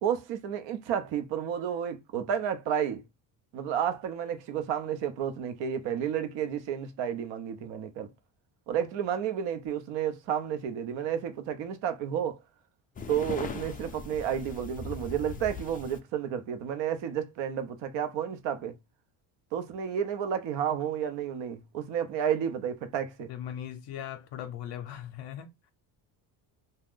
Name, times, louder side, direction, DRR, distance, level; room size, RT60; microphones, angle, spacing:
voice 1, 0.0-3.0 3.5-8.1 8.7-12.4 13.1-18.7 19.5-23.3, right 9 dB, 70° right, 0.8 m, -31 dB
sound 1, 13.0-16.0, left 5 dB, 20° left, 0.3 m, -39 dB
voice 2, 23.3-25.7, left 10 dB, 60° left, 0.6 m, -39 dB
2.5 x 2.3 x 3.5 m
cardioid pair, 110°, 46 cm